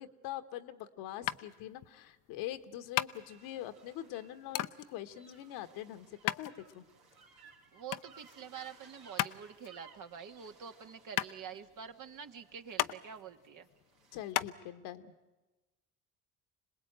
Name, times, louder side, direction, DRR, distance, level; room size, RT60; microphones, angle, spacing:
voice 1, 0.0-6.8 14.1-15.1, left 12 dB, 75° left, 9 dB, 1.5 m, -43 dB
sound 1, 1.3-14.5, left 14 dB, 55° left, 0.8 m, -38 dB
sound 2, 3.1-14.3, right 5 dB, 85° right, 3.7 m, -62 dB
voice 2, 7.7-13.7, right 7 dB, 50° right, 7 dB, 1.7 m, -47 dB
26.5 x 19.5 x 8.9 m, 1.1 s
supercardioid pair, 75°, 38 cm